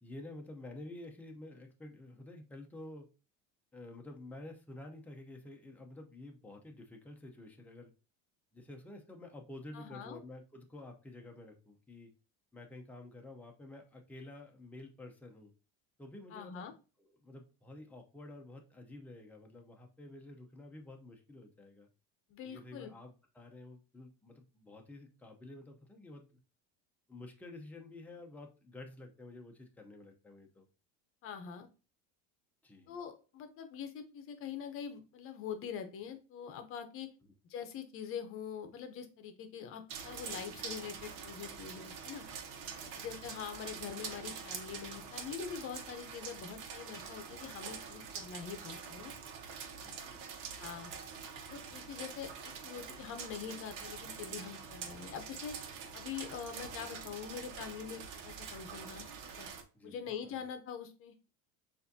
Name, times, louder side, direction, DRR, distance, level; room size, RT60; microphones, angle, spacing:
voice 1, 0.0-3.1 3.7-7.9 8.5-12.1 12.5-15.5 16.0-16.7 17.0-21.9 22.4-26.3 27.1-30.7 32.6-33.0 37.2-37.3 42.7-43.1 49.8-50.3 59.7-60.5, left 2 dB, 5° left, 2 dB, 0.6 m, -50 dB
voice 2, 9.7-10.2 16.3-16.7 22.3-22.9 31.2-31.7 32.9-37.1 37.5-42.2 43.0-49.1 50.6-50.9 51.5-55.6 55.9-59.5 59.8-61.3, left 7 dB, 40° left, 8 dB, 0.8 m, -44 dB
sound 1, 39.9-59.6, right 6 dB, 85° right, 1.0 m, -45 dB
6.8 x 2.7 x 2.7 m, 0.33 s
cardioid pair, 150°, 33 cm